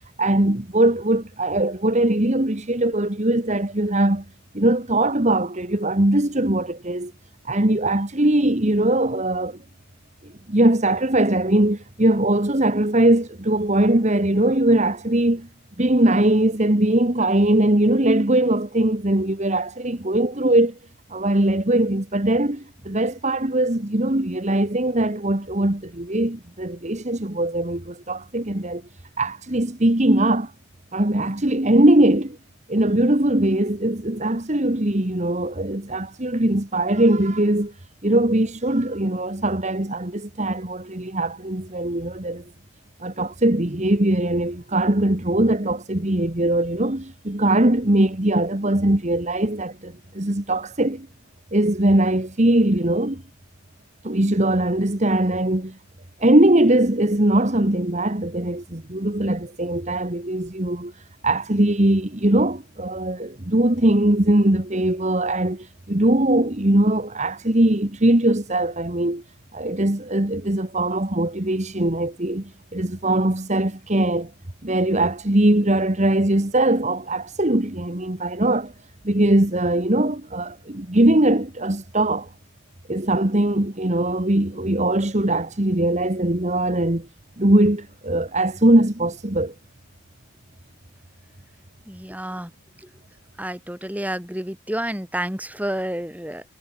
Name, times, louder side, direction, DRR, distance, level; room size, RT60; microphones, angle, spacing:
voice 1, 0.2-4.2 4.5-7.1 7.4-9.6 10.5-15.5 15.8-20.8 21.1-28.8 29.2-30.5 30.9-32.4 32.7-37.7 38.0-42.4 43.0-51.1 51.5-53.2 54.0-55.8 56.2-69.2 69.5-74.3 74.6-78.7 79.0-82.3 82.9-87.1 87.4-89.5, right 1 dB, 30° right, 1.6 m, -21 dB
voice 2, 91.9-92.5 93.4-96.4, right 1 dB, 5° right, 6.0 m, -29 dB
head